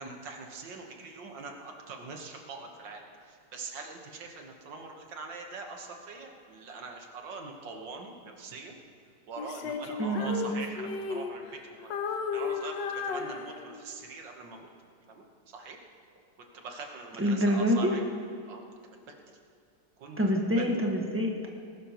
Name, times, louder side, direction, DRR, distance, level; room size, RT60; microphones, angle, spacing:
voice 1, 0.0-8.8 9.3-14.7 15.1-15.8 16.4-18.0 18.5-18.7 19.1-19.2 20.0-20.2 20.6-20.7, right 3 dB, 80° right, 2 dB, 2.0 m, -43 dB
Female singing, 9.4-11.6 11.9-14.0, left 5 dB, 75° left, 1.5 m, -34 dB
voice 2, 10.0-10.5 17.2-17.9 20.2-21.5, equal, 10° right, 0 dB, 1.3 m, -26 dB
20.0 x 12.5 x 3.0 m, 2.3 s
omnidirectional pair, 2.0 m